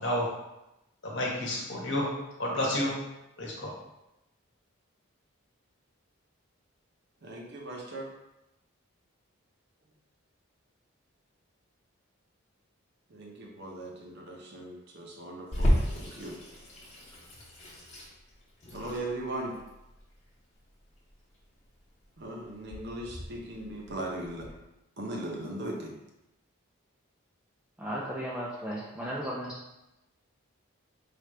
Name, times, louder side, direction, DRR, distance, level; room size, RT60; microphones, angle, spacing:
voice 1, 1.0-2.1 2.4-2.9 3.4-3.7, left 1 dB, 55° left, -3 dB, 1.0 m, -30 dB
voice 2, 7.2-8.1 13.1-16.3 18.7-19.6 22.2-24.5 25.0-25.9, right 1 dB, 50° right, -1 dB, 0.7 m, -38 dB
Water tap faucet / Sink (filling or washing), 15.5-24.5, equal, 30° left, 0.9 m, -34 dB
voice 3, 27.8-29.5, equal, 5° right, -6 dB, 0.3 m, -35 dB
3.3 x 2.4 x 4.2 m, 0.93 s
head